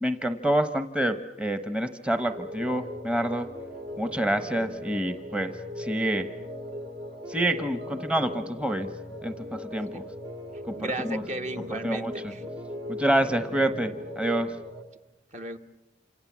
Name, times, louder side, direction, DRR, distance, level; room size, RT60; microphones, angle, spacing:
voice 1, 0.0-3.5 4.0-6.3 7.3-8.9 9.2-10.0 11.1-11.2 11.7-12.3 12.9-14.5, right 1 dB, 5° right, 9 dB, 0.9 m, -27 dB
sound 1, 2.3-14.8, left 1 dB, 65° right, 2.8 m, -39 dB
voice 2, 10.8-12.5 15.3-15.6, right 1 dB, 40° right, 6 dB, 1.2 m, -35 dB
29.0 x 27.5 x 7.3 m, 0.94 s
head